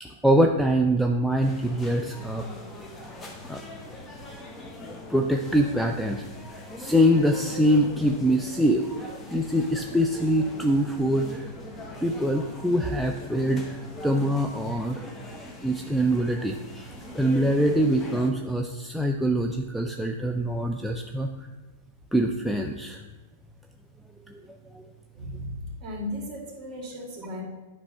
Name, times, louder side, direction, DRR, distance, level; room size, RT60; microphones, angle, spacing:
voice 1, 0.0-2.4 3.4-3.6 4.8-6.3 6.8-8.9 9.3-11.4 12.0-13.8 14.0-15.1 15.6-16.8 17.1-21.3 22.1-23.0 24.7-24.8, equal, ahead, 2 dB, 0.3 m, -24 dB
sound 1, 1.4-18.3, left 1 dB, 15° left, 0.9 m, -41 dB
voice 2, 25.1-27.4, left 1 dB, 35° right, 0 dB, 2.1 m, -36 dB
8.7 x 3.2 x 5.4 m, 1.2 s
hypercardioid pair, 140°, 0 cm